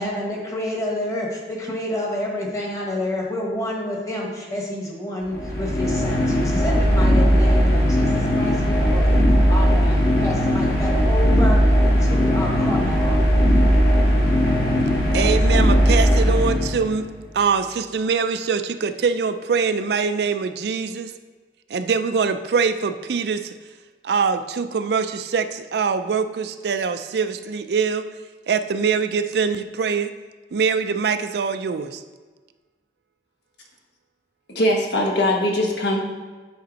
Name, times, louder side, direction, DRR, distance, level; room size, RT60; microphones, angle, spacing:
voice 1, 0.0-9.2 9.5-11.6 12.0-13.2, left 1 dB, 20° left, -2 dB, 1.3 m, -29 dB
sound 1, 5.3-17.1, equal, 60° left, 1.9 m, -18 dB
voice 2, 15.1-17.1 17.3-21.1 21.7-23.5 24.0-28.0 28.5-30.1 30.5-32.0, right 5 dB, 65° right, 10 dB, 0.4 m, -23 dB
voice 3, 34.5-36.0, left 1 dB, 75° left, 0 dB, 1.3 m, -21 dB
9.3 x 4.3 x 4.0 m, 1.4 s
head